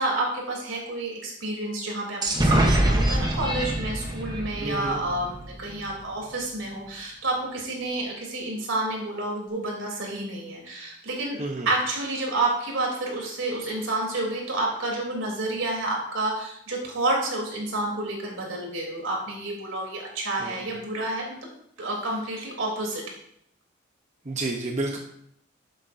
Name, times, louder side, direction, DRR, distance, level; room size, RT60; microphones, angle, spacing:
voice 1, 0.0-11.4 11.7-21.4 21.8-23.0, right 2 dB, 85° right, -2 dB, 3.4 m, -29 dB
sound 1, 2.2-5.9, right 1 dB, 20° right, 1.0 m, -24 dB
voice 2, 4.6-5.0 11.4-11.7 20.4-20.7 24.2-25.0, right 2 dB, 35° right, 1 dB, 0.9 m, -30 dB
12.0 x 8.2 x 2.7 m, 0.69 s
head